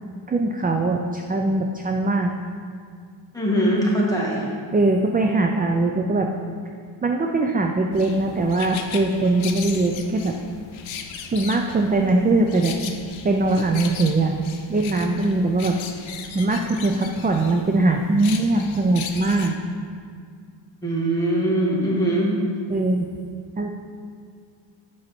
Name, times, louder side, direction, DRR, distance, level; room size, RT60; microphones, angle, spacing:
voice 1, 0.3-2.3 4.7-6.3 7.0-10.3 11.3-12.8 13.2-14.4 14.7-15.8 16.3-19.5 22.7-23.1 23.6-23.7, right 2 dB, 20° right, 3 dB, 0.3 m, -21 dB
voice 2, 3.3-4.5 20.8-22.4, right 1 dB, 10° left, -5 dB, 1.7 m, -21 dB
sound 1, 7.9-19.5, left 7 dB, 90° left, 0.7 m, -37 dB
7.8 x 5.5 x 4.2 m, 2.2 s
wide cardioid pair, 125°, 45 cm